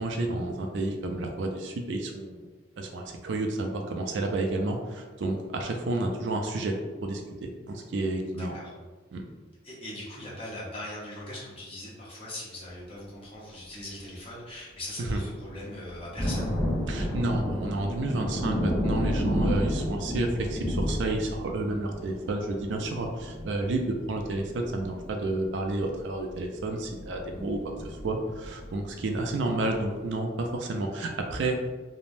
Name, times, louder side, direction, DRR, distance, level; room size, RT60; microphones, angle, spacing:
voice 1, 0.0-2.5 2.8-6.8 7.0-8.6 9.1-9.2 15.0-15.2 16.9-31.6, right 2 dB, 65° right, 3 dB, 0.3 m, -30 dB
voice 2, 8.3-8.7 9.6-16.5, left 1 dB, 30° left, -7 dB, 0.8 m, -40 dB
sound 1, 15.9-29.3 29.7-29.8, equal, ahead, 0.5 m, -32 dB
3.1 x 2.0 x 2.5 m, 1.3 s
head